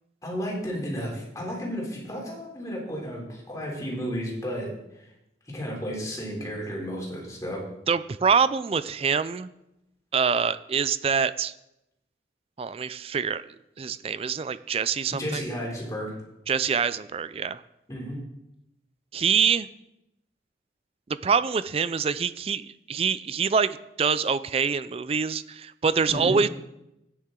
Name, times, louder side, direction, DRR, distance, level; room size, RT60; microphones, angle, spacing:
voice 1, 0.2-5.0 5.5-7.6 15.1-16.1 17.9-18.2 26.1-26.4, equal, 20° left, -3 dB, 3.2 m, -33 dB
voice 2, 7.9-9.5 10.1-11.5 12.6-13.4 13.8-15.4 16.5-17.6 19.1-19.7 21.2-26.5, right 6 dB, 35° right, 15 dB, 0.3 m, -25 dB
13.0 x 9.4 x 3.8 m, 0.88 s
head